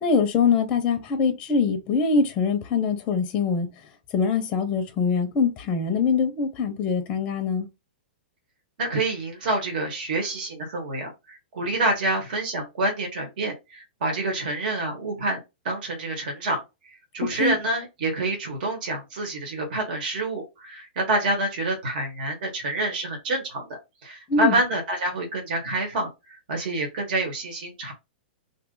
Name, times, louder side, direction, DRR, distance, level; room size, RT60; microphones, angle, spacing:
voice 1, 0.0-3.7 4.1-7.7 17.4-17.6 24.3-24.6, left 5 dB, 25° left, 0.6 m, -23 dB
voice 2, 8.8-16.6 17.1-27.9, right 2 dB, 55° right, 1.4 m, -27 dB
2.7 x 2.4 x 3.8 m
hypercardioid pair, 155°, 6 cm